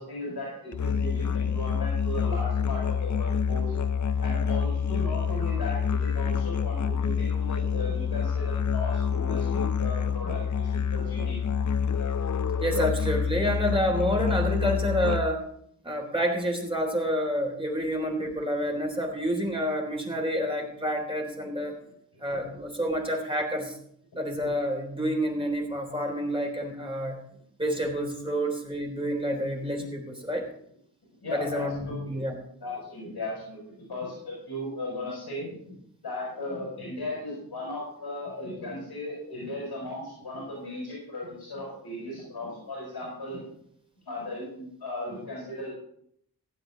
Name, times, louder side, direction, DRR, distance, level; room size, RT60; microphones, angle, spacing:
voice 1, 0.0-3.9 4.2-11.4 21.4-21.5 22.3-22.4 31.2-32.2 32.6-35.8 36.0-43.4 44.0-45.7, left 1 dB, 85° left, -5 dB, 6.3 m, -36 dB
Musical instrument, 0.7-15.5, left 6 dB, 50° left, 0.6 m, -27 dB
voice 2, 12.6-15.4 15.8-21.8 22.2-23.8 24.1-27.2 27.6-30.4 31.3-32.4, equal, 15° right, 0 dB, 3.5 m, -28 dB
16.0 x 8.9 x 4.0 m, 0.69 s
wide cardioid pair, 75°, 38 cm